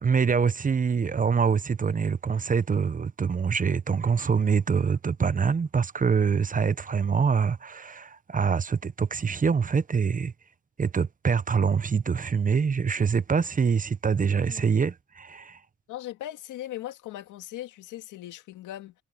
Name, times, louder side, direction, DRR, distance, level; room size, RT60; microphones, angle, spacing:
voice 1, 0.0-10.3 10.8-15.6, right 6 dB, 25° right, 0.7 m, -25 dB
voice 2, 15.9-18.9, left 13 dB, 90° left, 2.0 m, -39 dB
cardioid pair, 90°, 30 cm